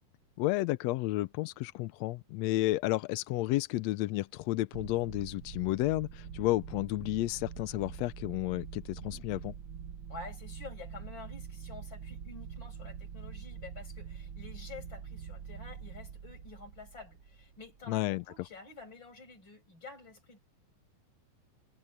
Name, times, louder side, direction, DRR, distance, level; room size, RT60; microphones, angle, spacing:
voice 1, 0.4-9.5 17.9-18.2, left 18 dB, 85° left, 1.6 m, -31 dB
sound 1, 4.7-18.0, right 7 dB, 75° right, 1.0 m, -45 dB
voice 2, 10.1-20.4, left 4 dB, 35° left, 7.0 m, -49 dB
omnidirectional pair, 3.6 m